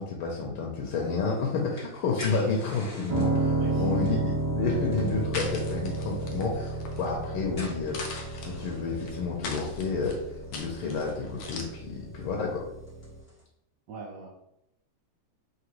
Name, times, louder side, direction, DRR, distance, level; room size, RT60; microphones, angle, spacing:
voice 1, 0.0-3.4 3.8-10.2 10.5-12.7, left 4 dB, 90° left, -1 dB, 1.6 m, -30 dB
sound 1, 1.0-13.4, left 1 dB, 30° left, 1.5 m, -49 dB
Piano, 3.1-13.2, right 2 dB, 85° right, 2.2 m, -32 dB
voice 2, 3.4-3.9 13.9-14.3, right 4 dB, 65° right, -3 dB, 1.2 m, -41 dB
sound 2, 4.9-11.6, left 3 dB, 70° left, 1.3 m, -42 dB
4.8 x 2.9 x 3.1 m, 0.83 s
omnidirectional pair, 2.3 m